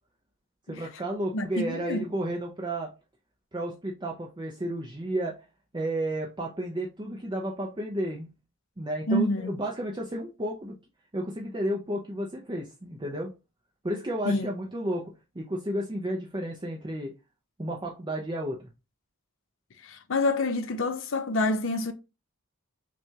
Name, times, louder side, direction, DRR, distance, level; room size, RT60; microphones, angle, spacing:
voice 1, 0.7-2.9 3.5-5.4 5.7-8.3 8.8-10.7 11.1-13.3 13.8-17.1 17.6-18.7, right 1 dB, 20° right, 0.5 m, -32 dB
voice 2, 1.3-2.1 9.1-9.5 14.3-14.5 19.8-21.9, left 1 dB, 60° left, 0.6 m, -27 dB
5.8 x 2.3 x 2.7 m
head